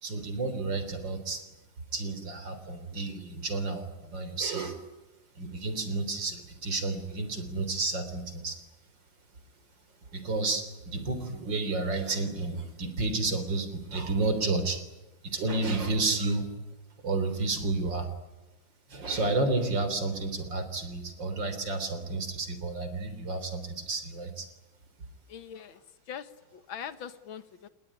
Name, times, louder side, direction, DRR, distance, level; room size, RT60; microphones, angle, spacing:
voice 1, 0.0-1.4 1.9-4.8 5.4-8.6 10.1-14.8 15.2-16.5 17.0-18.1 18.9-24.5, right 3 dB, 65° right, 10 dB, 4.3 m, -31 dB
voice 2, 25.3-27.7, left 8 dB, 85° left, 12 dB, 2.1 m, -42 dB
28.0 x 20.0 x 9.8 m, 1.0 s
omnidirectional pair, 2.1 m